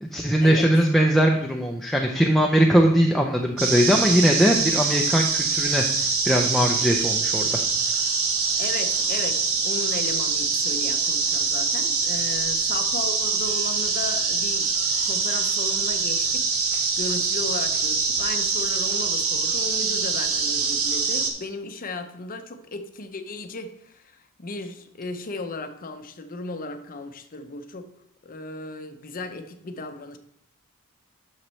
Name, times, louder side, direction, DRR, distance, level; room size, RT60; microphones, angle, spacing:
voice 1, 0.0-7.6, equal, ahead, 0 dB, 0.5 m, -20 dB
sound 1, 3.6-21.3, right 4 dB, 65° right, 1.1 m, -24 dB
voice 2, 8.6-14.8 15.0-27.9 28.2-30.2, left 3 dB, 40° left, 7 dB, 0.7 m, -35 dB
8.8 x 6.5 x 3.2 m, 0.70 s
head